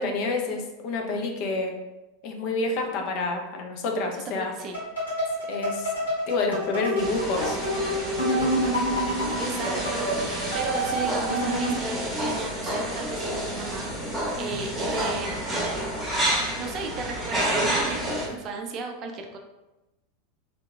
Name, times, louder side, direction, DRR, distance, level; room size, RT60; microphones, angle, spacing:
voice 1, 0.0-1.8 2.2-4.5 5.5-5.9 6.3-7.6, left 3 dB, 50° left, 3 dB, 0.5 m, -28 dB
voice 2, 4.3-4.8 9.1-15.4 16.5-19.4, right 4 dB, 40° right, 3 dB, 0.4 m, -35 dB
sound 1, 4.7-11.9, equal, 80° left, 1.2 m, -28 dB
sound 2, 7.0-18.3, right 1 dB, 10° right, 1.0 m, -29 dB
2.8 x 2.4 x 2.3 m, 1.0 s
figure-of-eight pair, 85°, 0 cm